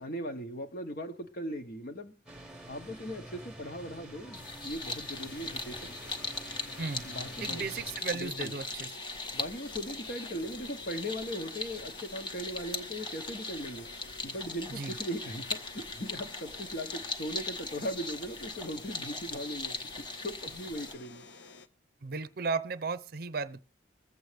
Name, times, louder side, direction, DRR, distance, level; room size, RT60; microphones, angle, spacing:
voice 1, 0.0-2.1 2.7-5.9 7.0-7.7 8.1-8.5 9.3-13.9 14.2-19.8 20.2-21.3, equal, 50° left, 1.2 m, -39 dB
sound 1, 2.3-8.0, right 1 dB, 5° right, 1.1 m, -48 dB
sound 2, 4.3-20.9, left 2 dB, 25° left, 1.0 m, -40 dB
sound 3, 5.1-21.7, left 4 dB, 70° left, 0.8 m, -52 dB
voice 2, 7.4-8.9 14.7-14.9 22.0-23.6, right 4 dB, 55° right, 0.6 m, -35 dB
21.5 x 7.8 x 3.4 m
head